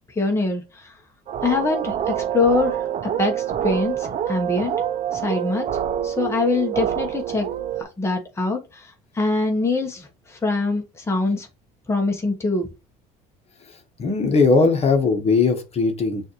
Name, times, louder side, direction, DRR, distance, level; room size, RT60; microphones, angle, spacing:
voice 1, 0.2-1.0 1.4-2.8 3.2-4.8 5.1-5.7 6.0-7.5 8.0-11.5 11.9-12.7, left 3 dB, 15° left, 1.0 m, -24 dB
sound 1, 1.3-7.8, right 10 dB, 45° right, 0.6 m, -26 dB
voice 2, 14.0-16.2, left 4 dB, 35° left, 1.2 m, -19 dB
6.2 x 2.7 x 3.0 m
supercardioid pair, 80°, 18 cm